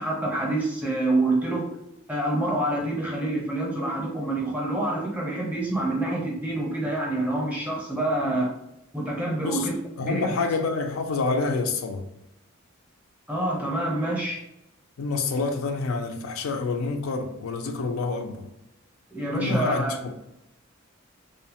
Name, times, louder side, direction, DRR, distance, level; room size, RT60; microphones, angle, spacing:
voice 1, 0.0-1.7 2.1-8.5 8.9-10.5 13.3-14.4 19.1-20.0, right 1 dB, 5° right, 0.6 m, -27 dB
voice 2, 10.0-12.0 15.0-18.5 19.3-20.1, left 4 dB, 80° left, 0.4 m, -27 dB
2.7 x 2.0 x 2.8 m
head